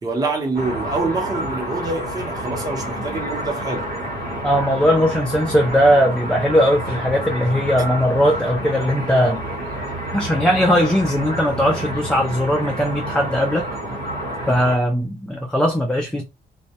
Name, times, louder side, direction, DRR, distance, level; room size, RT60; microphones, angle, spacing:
voice 1, 0.0-3.9, right 3 dB, 25° right, 0.7 m, -25 dB
sound 1, 0.5-14.8, right 1 dB, 85° right, 0.9 m, -29 dB
voice 2, 4.4-9.4 10.1-13.7 14.5-16.2, equal, 5° left, 0.3 m, -19 dB
2.1 x 2.0 x 2.7 m
wide cardioid pair, 150°, 15 cm